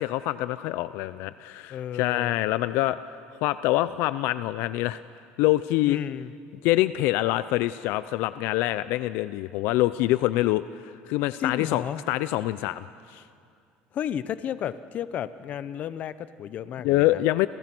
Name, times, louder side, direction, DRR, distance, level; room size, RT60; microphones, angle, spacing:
voice 1, 0.0-3.0 3.3-5.0 5.4-6.0 6.6-13.2 16.8-17.5, left 16 dB, 70° left, 14 dB, 0.6 m, -25 dB
voice 2, 1.7-2.3 5.9-6.3 11.4-12.0 13.9-17.2, left 9 dB, 40° left, 14 dB, 0.9 m, -33 dB
30.0 x 28.0 x 6.2 m, 2.3 s
cardioid pair, 145°, 4 cm